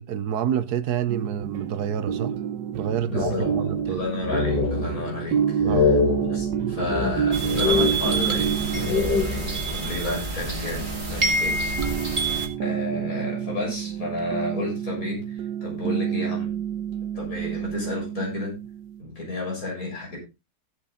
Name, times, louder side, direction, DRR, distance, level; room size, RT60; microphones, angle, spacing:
voice 1, 0.0-2.4 2.7-4.0 5.6-6.0, right 9 dB, 70° right, 1.2 m, -28 dB
sound 1, 1.1-19.0, right 9 dB, 85° right, 1.4 m, -29 dB
sound 2, 3.1-4.0 4.2-5.2 5.6-8.4 8.7-9.7, left 5 dB, 80° left, 2.5 m, -25 dB
voice 2, 3.1-6.0 6.2-11.6 12.6-16.5 17.1-18.5 19.0-20.2, left 2 dB, 50° left, 7.1 m, -32 dB
sound 3, 7.3-12.5, right 3 dB, 30° right, 2.1 m, -27 dB
16.5 x 7.7 x 3.8 m
omnidirectional pair, 1.9 m